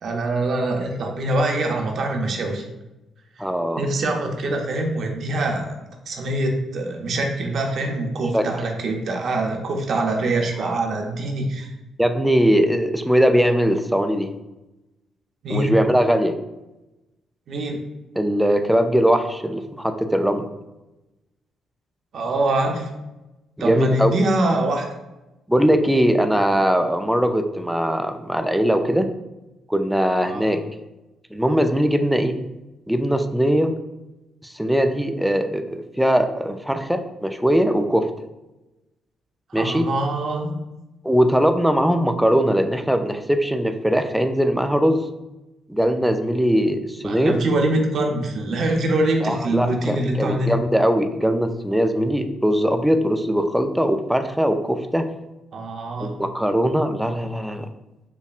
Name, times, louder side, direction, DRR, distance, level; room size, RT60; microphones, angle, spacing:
voice 1, 0.0-2.6 3.8-5.8 6.1-11.7 15.4-15.8 17.5-17.8 22.1-22.9 23.6-24.9 30.2-30.5 39.5-40.5 47.0-50.5 55.5-56.2, right 2 dB, 60° right, 2 dB, 0.6 m, -24 dB
voice 2, 3.4-3.8 8.3-8.5 10.6-10.7 12.0-14.3 15.5-16.3 18.2-20.5 23.6-24.2 25.5-29.1 29.7-30.6 31.3-32.4 32.9-33.7 34.4-38.1 39.5-39.9 41.0-45.0 45.7-47.4 49.2-55.1 56.0-57.7, equal, 5° right, 7 dB, 0.3 m, -20 dB
5.4 x 2.1 x 2.4 m, 1.0 s
cardioid pair, 90°, 0 cm